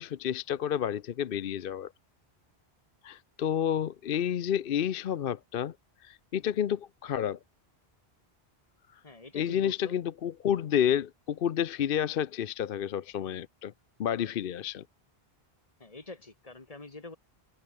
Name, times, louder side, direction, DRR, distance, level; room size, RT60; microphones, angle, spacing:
voice 1, 0.0-1.9 3.0-5.7 6.0-7.4 9.3-13.7 14.0-14.8, left 9 dB, 65° left, 0.8 m, -30 dB
voice 2, 9.0-10.0 15.8-17.2, left 3 dB, 35° left, 1.7 m, -46 dB
open air
omnidirectional pair, 1.0 m